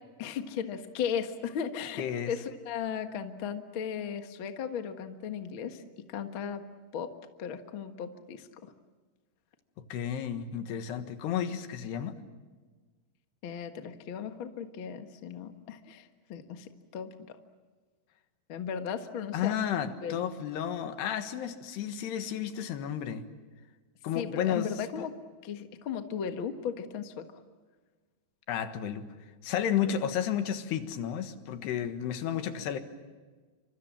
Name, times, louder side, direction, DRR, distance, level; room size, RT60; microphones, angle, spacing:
voice 1, 0.2-6.6 6.9-7.1 7.4-8.7 13.4-17.4 18.5-19.5 20.0-20.2 24.1-25.1 25.4-27.3 29.8-30.0, left 7 dB, 55° left, 7 dB, 1.4 m, -36 dB
voice 2, 2.0-2.3 9.9-12.2 19.3-23.3 24.0-25.1 28.5-29.1 29.4-32.8, left 9 dB, 85° left, 9 dB, 3.6 m, -32 dB
28.0 x 26.5 x 7.5 m, 1.4 s
omnidirectional pair, 4.7 m